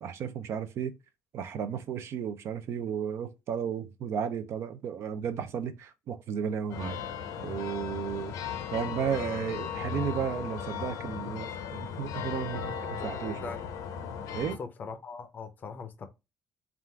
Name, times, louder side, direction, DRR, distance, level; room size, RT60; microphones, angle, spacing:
voice 1, 0.0-1.0 1.3-7.0 7.4-8.4 8.7-12.7 13.0-13.5 14.3-14.6, right 7 dB, 50° right, 0.5 m, -33 dB
sound 1, 6.7-14.6, left 7 dB, 70° left, 0.7 m, -37 dB
voice 2, 13.0-13.6 14.4-16.1, left 5 dB, 30° left, 0.6 m, -41 dB
3.6 x 2.4 x 4.4 m
cardioid pair, 165°, 6 cm